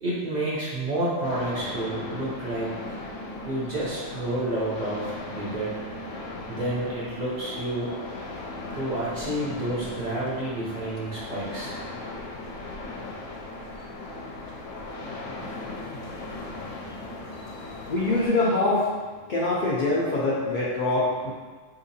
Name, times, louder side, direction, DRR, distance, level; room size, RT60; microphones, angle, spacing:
voice 1, 0.0-3.0 3.4-5.8 6.5-7.9 8.7-11.8, right 1 dB, 45° right, -7 dB, 0.7 m, -30 dB
sound 1, 1.2-18.3, left 2 dB, 80° left, 0.9 m, -38 dB
voice 2, 17.4-18.9 19.3-21.3, left 2 dB, 60° left, -7 dB, 0.5 m, -24 dB
3.7 x 2.8 x 2.7 m, 1.5 s
omnidirectional pair, 1.3 m